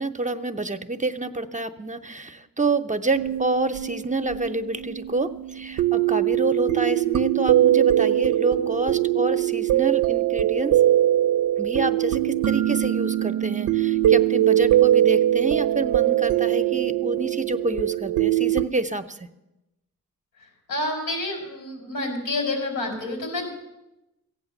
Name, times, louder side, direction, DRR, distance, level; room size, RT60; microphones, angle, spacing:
voice 1, 0.0-10.8 11.6-19.3, right 2 dB, 25° right, 9 dB, 0.7 m, -27 dB
sound 1, 3.1-18.7, right 13 dB, 70° right, 0.4 m, -22 dB
voice 2, 20.7-23.5, left 2 dB, 90° left, 3 dB, 4.5 m, -28 dB
15.0 x 8.9 x 7.2 m, 0.97 s
cardioid pair, 75°, 33 cm